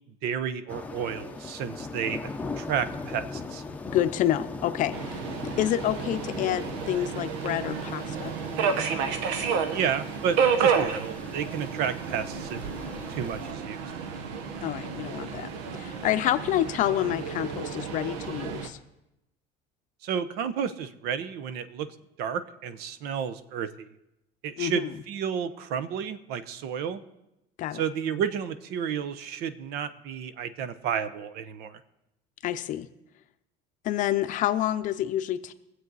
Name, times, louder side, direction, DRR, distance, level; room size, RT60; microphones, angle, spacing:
voice 1, 0.2-2.3 2.6-3.6 9.7-12.6 13.1-13.9 20.0-21.9 22.2-23.9 24.4-27.0 27.7-31.8, right 7 dB, 65° right, 13 dB, 0.8 m, -31 dB
sound 1, 0.7-13.5, left 3 dB, 10° left, 0.7 m, -40 dB
voice 2, 3.9-5.2 5.6-8.3 14.6-18.8 24.6-24.9 27.6-27.8 32.4-32.9 33.8-35.5, left 12 dB, 45° left, 10 dB, 0.6 m, -28 dB
Subway metro underground, 4.9-18.7, right 6 dB, 85° right, 1.2 m, -31 dB
22.5 x 7.8 x 4.0 m, 0.87 s
cardioid pair, 155°, 18 cm